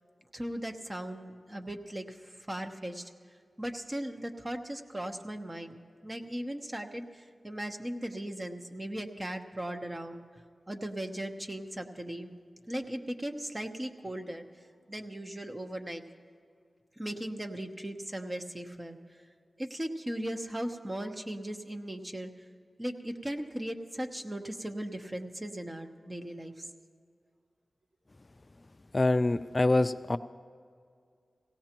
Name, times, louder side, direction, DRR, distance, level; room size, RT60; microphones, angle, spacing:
voice 1, 0.3-3.1 3.6-10.2 10.7-12.3 12.7-14.5 14.9-16.0 17.0-19.0 19.6-22.3 22.8-26.6, right 1 dB, 25° right, 5 dB, 1.0 m, -38 dB
voice 2, 28.9-30.2, left 2 dB, 40° left, 12 dB, 0.3 m, -25 dB
17.5 x 17.0 x 3.0 m, 2.2 s
cardioid pair, 50°, 0 cm